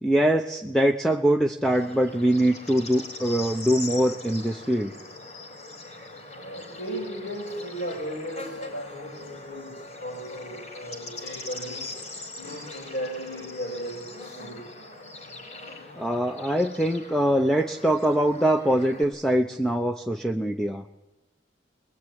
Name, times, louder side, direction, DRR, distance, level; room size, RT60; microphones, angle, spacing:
voice 1, 0.0-4.9 16.0-20.8, right 1 dB, 5° left, 5 dB, 0.9 m, -23 dB
Bird / Insect, 1.6-19.0, left 2 dB, 40° left, 5.2 m, -41 dB
voice 2, 6.4-11.9 12.4-14.6, equal, 65° left, -4 dB, 7.2 m, -36 dB
22.0 x 21.5 x 10.0 m, 0.99 s
head